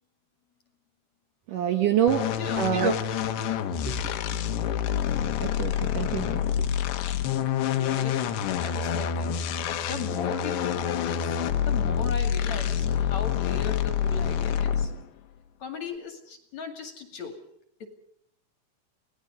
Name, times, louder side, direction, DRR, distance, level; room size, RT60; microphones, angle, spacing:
voice 1, 1.5-2.3 2.6-2.9 3.8-4.1 5.4-6.7, right 9 dB, 65° right, 7 dB, 2.3 m, -26 dB
sound 1, 2.1-15.0, left 9 dB, 80° left, 3.5 m, -27 dB
voice 2, 7.7-11.4 11.6-15.0 15.6-17.4 17.8-17.9, left 4 dB, 45° left, 7 dB, 3.1 m, -38 dB
30.0 x 19.0 x 5.3 m, 0.71 s
omnidirectional pair, 5.0 m